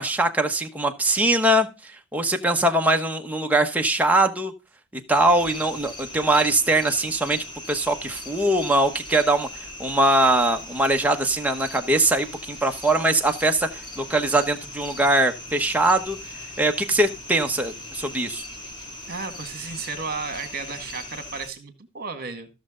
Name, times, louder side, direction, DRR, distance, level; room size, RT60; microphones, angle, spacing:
voice 1, 0.0-4.5 5.1-16.2 16.6-18.4, right 1 dB, 5° right, 3 dB, 1.0 m, -22 dB
sound 1, 5.1-21.5, left 1 dB, 20° left, 2.3 m, -40 dB
voice 2, 19.1-22.5, right 4 dB, 45° right, 9 dB, 1.8 m, -33 dB
14.5 x 6.5 x 3.8 m, 0.29 s
head